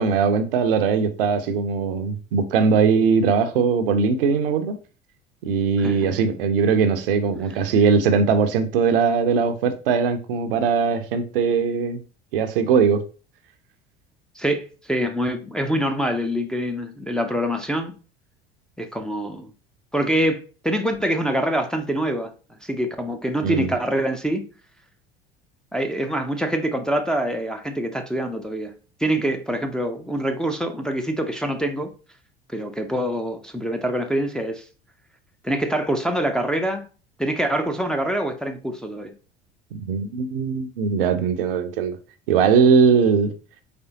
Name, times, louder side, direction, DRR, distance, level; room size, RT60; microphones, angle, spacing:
voice 1, 0.0-4.8 5.4-12.0 12.3-13.0 23.4-23.7 39.7-42.0 42.3-43.3, right 5 dB, 65° right, 0.6 m, -20 dB
voice 2, 5.8-6.1 14.4-18.0 18.8-19.5 19.9-22.3 22.6-24.4 25.7-28.7 29.0-31.9 32.5-34.6 35.4-36.8 37.2-39.1, right 1 dB, ahead, 0.5 m, -25 dB
4.3 x 3.3 x 2.8 m
figure-of-eight pair, 65°, 30 cm